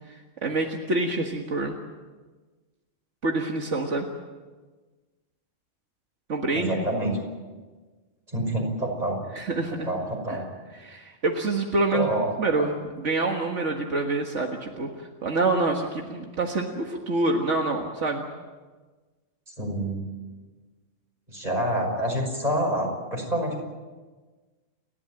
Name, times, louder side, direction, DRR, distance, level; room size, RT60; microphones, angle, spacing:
voice 1, 0.1-1.8 3.2-4.1 6.3-6.8 9.3-9.9 10.3-10.4 10.7-12.1 12.4-18.3, right 2 dB, 75° right, 2 dB, 2.0 m, -27 dB
voice 2, 6.5-7.2 8.3-9.2 9.8-10.4 11.9-12.3 19.6-20.0 21.3-23.6, right 1 dB, 35° right, 1 dB, 5.8 m, -27 dB
29.5 x 12.5 x 9.0 m, 1.3 s
omnidirectional pair, 1.2 m